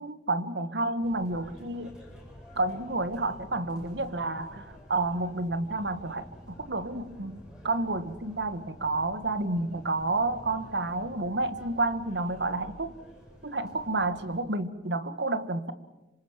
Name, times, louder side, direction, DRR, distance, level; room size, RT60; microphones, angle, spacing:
voice 1, 0.0-1.9 2.6-7.4 7.6-12.9 13.4-15.7, right 2 dB, 85° right, 12 dB, 1.7 m, -30 dB
sound 1, 1.0-14.4, equal, 5° right, 7.2 m, -50 dB
27.0 x 26.0 x 7.6 m, 1.1 s
head